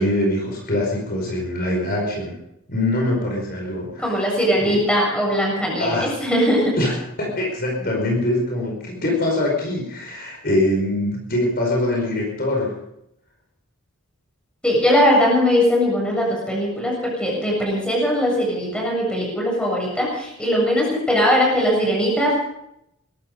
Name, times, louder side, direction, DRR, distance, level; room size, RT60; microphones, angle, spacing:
voice 1, 0.0-2.4 2.7-4.1 4.6-4.8 5.8-6.1 6.8-6.9 7.2-12.7, left 1 dB, 45° left, -1 dB, 5.2 m, -23 dB
voice 2, 4.0-6.8 14.6-22.4, equal, 5° left, -3 dB, 7.5 m, -20 dB
21.5 x 12.5 x 5.3 m, 0.80 s
head